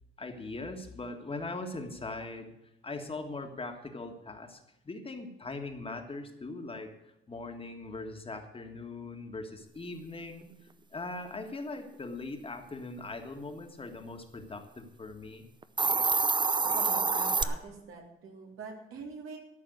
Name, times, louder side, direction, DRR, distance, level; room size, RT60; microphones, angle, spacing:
voice 1, 0.2-2.5 2.8-10.5 10.9-15.5, left 2 dB, 25° left, 5 dB, 1.7 m, -40 dB
Hiss, 15.6-17.4, right 4 dB, 20° right, 0.6 m, -26 dB
voice 2, 16.7-19.4, right 4 dB, 85° right, 1 dB, 3.1 m, -43 dB
13.5 x 5.8 x 9.3 m, 0.87 s
cardioid pair, 110°, 21 cm